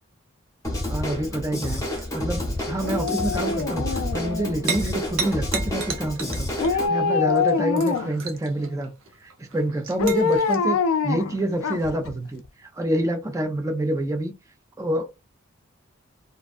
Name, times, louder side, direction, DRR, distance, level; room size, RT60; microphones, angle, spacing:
Drum kit / Drum, 0.6-6.9, left 1 dB, 15° left, 0.7 m, -29 dB
voice 1, 0.9-8.9 9.2-10.8 11.0-14.3 14.8-15.1, right 1 dB, 15° right, 0.4 m, -27 dB
sound 1, 1.6-10.6, right 6 dB, 70° right, 0.6 m, -35 dB
Dog, 2.8-4.9 6.6-8.3 10.0-12.1 12.5-12.6, left 5 dB, 85° left, 0.4 m, -25 dB
2.5 x 2.2 x 2.4 m
head